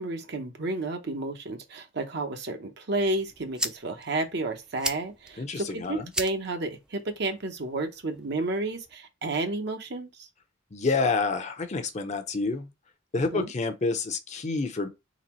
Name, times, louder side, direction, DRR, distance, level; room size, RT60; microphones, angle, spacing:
voice 1, 0.0-10.3 13.1-13.5, right 2 dB, 60° right, 0.9 m, -31 dB
sound 1, 3.0-9.0, right 1 dB, 5° right, 0.4 m, -39 dB
voice 2, 5.4-6.1 10.7-12.7 13.1-14.9, left 3 dB, 35° left, 0.6 m, -28 dB
4.0 x 3.4 x 3.0 m
head